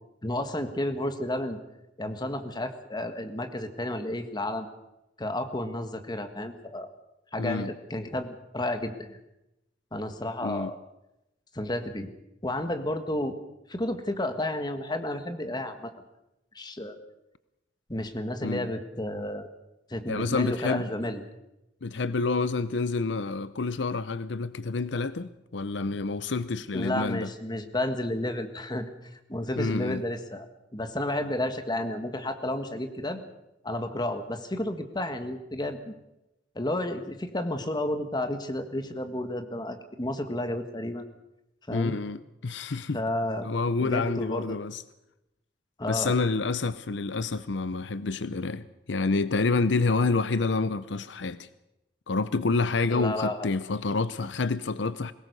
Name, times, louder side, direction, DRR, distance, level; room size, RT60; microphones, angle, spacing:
voice 1, 0.2-1.6 2.0-4.7 5.2-6.9 7.3-9.2 9.9-10.8 11.5-12.1 12.4-13.3 13.7-15.9 16.5-17.0 17.9-19.5 19.9-21.2 26.7-30.4 30.7-33.2 33.6-35.9 36.5-41.0 41.7-42.0 42.9-43.5 43.8-44.6 45.8-46.1 52.9-53.5, left 1 dB, 25° left, 1.6 m, -31 dB
voice 2, 7.4-7.7 10.4-10.7 18.4-18.7 20.1-20.9 21.8-27.3 29.6-30.0 41.7-43.0 43.4-44.8 45.9-51.5 52.1-55.1, left 3 dB, 70° left, 0.7 m, -28 dB
21.5 x 18.5 x 6.8 m
head